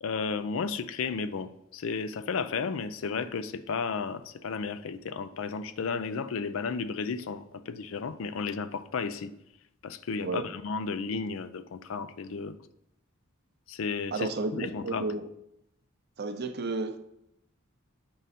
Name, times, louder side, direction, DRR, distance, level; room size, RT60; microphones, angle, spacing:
voice 1, 0.0-9.3 9.8-12.6 13.7-15.1, left 5 dB, 75° left, 12 dB, 0.4 m, -33 dB
voice 2, 14.1-15.3 16.2-17.0, right 3 dB, 50° right, 9 dB, 0.6 m, -32 dB
9.0 x 3.8 x 4.2 m, 0.81 s
head